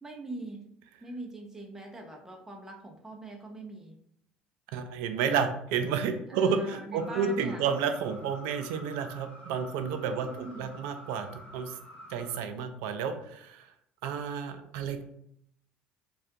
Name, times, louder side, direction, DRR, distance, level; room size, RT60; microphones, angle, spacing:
voice 1, 0.0-0.7 1.0-4.0 6.3-7.7 10.1-10.8, right 2 dB, 10° right, 1 dB, 0.5 m, -42 dB
voice 2, 4.7-11.3 11.5-11.8 12.1-13.7 14.0-15.0, right 6 dB, 70° right, 7 dB, 0.3 m, -31 dB
sound 1, 7.0-12.4, equal, 25° left, 0.9 m, -49 dB
2.3 x 2.2 x 2.6 m, 0.71 s
hypercardioid pair, 65°, 4 cm